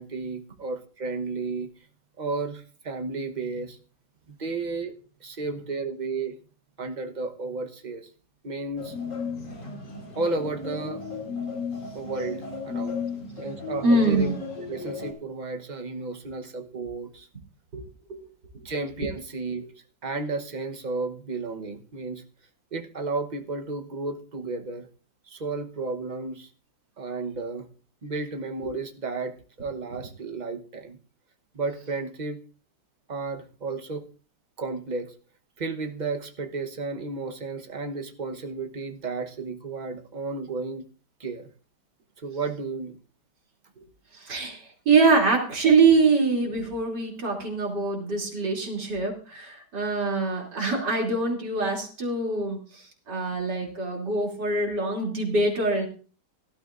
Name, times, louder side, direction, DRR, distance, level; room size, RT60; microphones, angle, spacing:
voice 1, 0.0-1.7 2.2-3.8 4.3-4.9 5.2-6.3 6.8-8.1 8.4-8.9 10.2-11.0 11.9-13.0 13.4-14.3 14.7-17.3 18.6-19.7 20.0-22.2 22.7-24.9 25.3-26.5 27.0-27.7 28.0-31.0 31.5-32.4 33.1-34.1 34.6-35.1 35.6-40.8 41.2-41.5 42.2-43.0, right 3 dB, 30° right, 5 dB, 1.0 m, -33 dB
sound 1, 8.8-15.1, left 5 dB, 80° left, 3.4 m, -35 dB
voice 2, 13.8-14.3 17.7-18.2 19.0-19.1 28.6-28.8 44.1-55.9, right 3 dB, 75° right, 0 dB, 3.7 m, -24 dB
17.5 x 12.5 x 2.6 m, 0.38 s
omnidirectional pair, 1.9 m